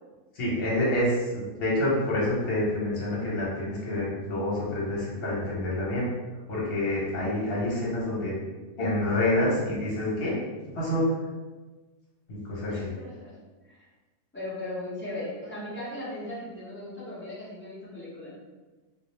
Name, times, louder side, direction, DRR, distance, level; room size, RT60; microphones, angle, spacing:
voice 1, 0.3-6.1 6.5-8.3 8.8-10.4 10.7-11.1 12.3-12.9, left 1 dB, 50° left, -6 dB, 1.0 m, -27 dB
voice 2, 12.7-13.3 13.7-13.9 14.3-18.4, left 1 dB, 15° left, -10 dB, 0.4 m, -38 dB
2.4 x 2.0 x 3.0 m, 1.3 s
omnidirectional pair, 1.5 m